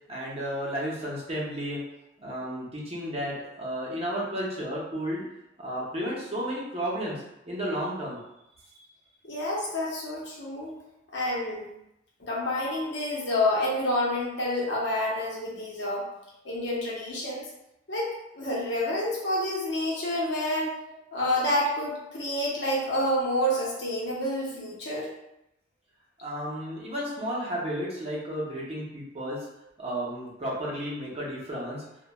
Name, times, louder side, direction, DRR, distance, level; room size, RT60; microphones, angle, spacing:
voice 1, 0.1-1.8 2.2-5.2 5.6-8.2 8.7-8.8 26.2-29.4 29.8-31.8, equal, 35° right, -5 dB, 0.7 m, -33 dB
voice 2, 9.2-10.8 11.1-11.7 12.2-16.1 16.4-17.5 17.9-20.7 21.1-25.1, left 1 dB, 65° left, -5 dB, 0.8 m, -28 dB
2.9 x 2.2 x 2.2 m, 0.86 s
head